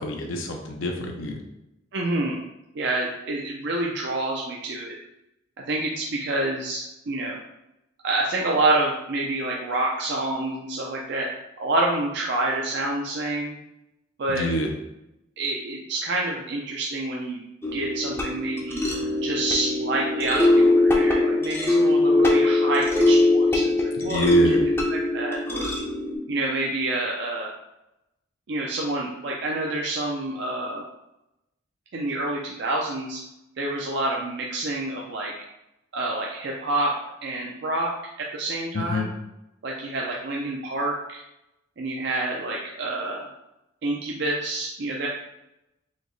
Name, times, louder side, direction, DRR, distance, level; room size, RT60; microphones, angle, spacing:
voice 1, 0.0-1.4 14.3-14.7 24.0-24.6 38.7-39.1, equal, 75° left, 2 dB, 0.5 m, -26 dB
voice 2, 1.9-2.4 2.7-5.0 5.6-7.4 8.0-11.3 11.6-13.6 14.2-14.5 15.4-17.4 17.7-18.8 19.2-25.7 26.3-27.5 28.5-30.9 31.9-33.2 33.6-35.3 35.9-36.9 37.2-39.1 39.6-41.2 41.8-43.3 43.8-45.1, right 2 dB, 55° right, -1 dB, 0.5 m, -28 dB
sound 1, 17.6-26.2, left 2 dB, 10° left, 0.5 m, -21 dB
4.2 x 2.9 x 3.1 m, 0.89 s
head